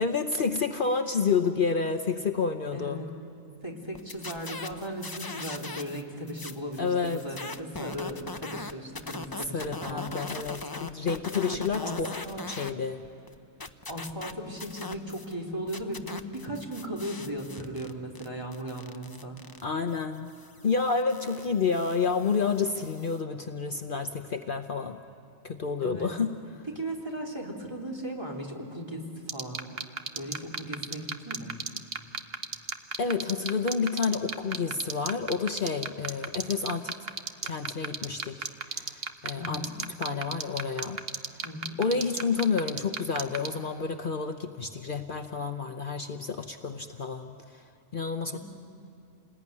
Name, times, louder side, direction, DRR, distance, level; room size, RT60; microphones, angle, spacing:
voice 1, 0.0-3.0 6.8-7.2 9.5-12.1 12.4-13.0 19.6-20.3 20.6-25.0 25.4-26.4 33.0-37.0 37.4-39.7 40.0-41.0 41.8-47.6 47.9-48.4, left 5 dB, 50° left, 6 dB, 1.0 m, -29 dB
voice 2, 2.7-3.1 3.6-10.1 11.4-12.7 13.9-19.4 22.7-22.8 25.8-26.1 26.7-29.7 30.1-31.6 39.4-39.8 41.4-41.8 48.3-48.4, equal, 20° right, -2 dB, 3.4 m, -37 dB
sound 1, 3.9-6.0 6.3-12.7 13.0-15.3 15.7-23.2, left 3 dB, 20° left, 0.7 m, -41 dB
sound 2, 29.3-43.5, right 5 dB, 60° right, 1.2 m, -31 dB
29.0 x 20.0 x 9.7 m, 2.6 s
omnidirectional pair, 1.2 m